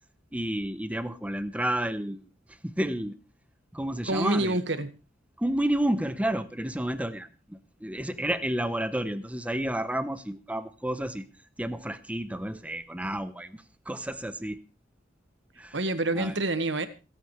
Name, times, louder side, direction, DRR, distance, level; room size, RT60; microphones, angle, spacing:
voice 1, 0.3-2.2 2.6-3.1 3.7-4.6 5.4-11.2 11.6-14.6 15.6-15.8 16.1-16.4, right 1 dB, 10° right, 0.9 m, -31 dB
voice 2, 4.1-4.9 15.7-16.9, right 2 dB, 70° right, 1.6 m, -27 dB
27.5 x 9.3 x 3.3 m
head